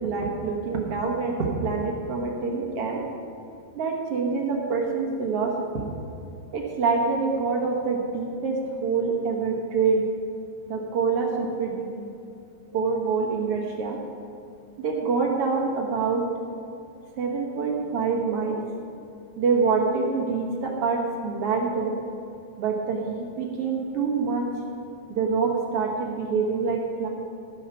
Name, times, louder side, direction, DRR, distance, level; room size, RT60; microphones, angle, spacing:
voice 1, 0.0-3.0 3.8-5.9 6.5-10.1 10.7-12.1 12.7-14.0 14.8-16.2 17.2-18.6 19.4-22.0 22.6-24.5 25.1-27.1, right 4 dB, 60° right, -1 dB, 1.7 m, -26 dB
15.0 x 7.3 x 5.8 m, 2.6 s
omnidirectional pair, 4.0 m